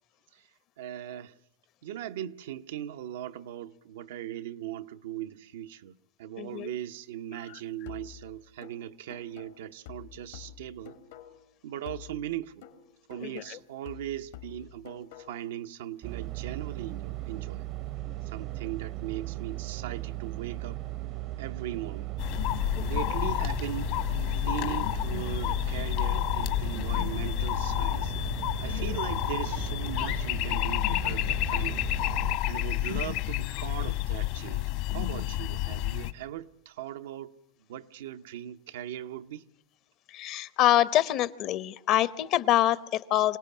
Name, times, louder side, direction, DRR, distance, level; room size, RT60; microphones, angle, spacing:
voice 1, 0.8-1.3 1.8-11.0 11.6-12.7 13.1-17.7 18.2-20.8 21.4-22.1 22.8-28.1 28.6-31.8 32.5-37.4 37.7-39.5, right 11 dB, 85° right, 0.8 m, -39 dB
voice 2, 6.4-6.7 7.5-7.6 13.2-13.6 22.7-23.1 28.6-28.9 40.1-43.4, left 13 dB, 45° left, 0.8 m, -26 dB
sound 1, 7.9-11.5 11.9-15.5, left 11 dB, 85° left, 3.1 m, -49 dB
sound 2, 16.0-32.4, right 16 dB, 50° right, 0.7 m, -37 dB
sound 3, 22.2-36.1, left 16 dB, 60° left, 1.4 m, -30 dB
25.5 x 17.5 x 7.2 m
supercardioid pair, 130°, 0 cm